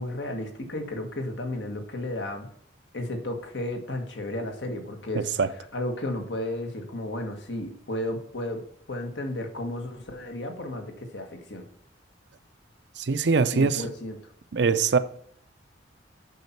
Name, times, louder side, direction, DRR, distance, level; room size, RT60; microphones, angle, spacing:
voice 1, 0.0-2.5 2.9-5.3 5.7-8.6 8.9-11.6 13.5-14.2, left 1 dB, 75° left, 1.7 m, -33 dB
voice 2, 5.2-5.5 13.0-13.9 14.5-15.0, right 5 dB, 65° right, 0.5 m, -23 dB
8.1 x 5.7 x 4.5 m
head